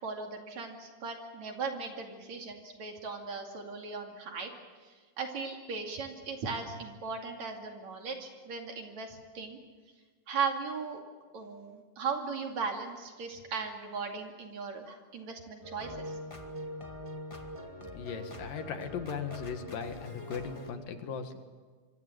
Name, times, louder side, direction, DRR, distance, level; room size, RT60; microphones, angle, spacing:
voice 1, 0.0-4.5 4.8-9.6 10.3-11.0 11.3-16.1, right 5 dB, 55° right, 3 dB, 3.6 m, -37 dB
sound 1, 15.6-20.7, equal, 15° left, 1.3 m, -43 dB
voice 2, 17.8-21.4, left 6 dB, 75° left, 7 dB, 3.4 m, -38 dB
26.5 x 23.5 x 8.0 m, 1.4 s
omnidirectional pair, 4.0 m